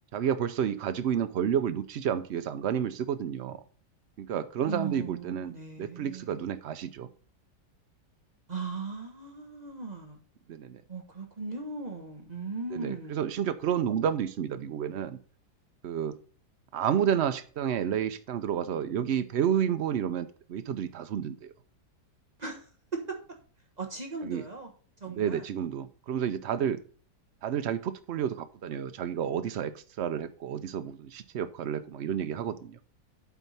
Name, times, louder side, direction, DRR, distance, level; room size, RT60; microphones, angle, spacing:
voice 1, 0.1-3.6 4.2-5.5 5.8-7.1 10.5-10.8 12.7-15.2 15.8-16.2 16.7-21.5 24.2-24.4 25.1-26.8 27.4-32.8, right 9 dB, 85° right, 10 dB, 0.5 m, -30 dB
voice 2, 4.6-6.3 8.5-10.2 10.9-13.3 22.4-23.2 23.8-24.7 25.0-25.5, right 4 dB, 25° right, 1 dB, 1.2 m, -38 dB
8.3 x 4.6 x 5.6 m, 0.40 s
omnidirectional pair, 1.8 m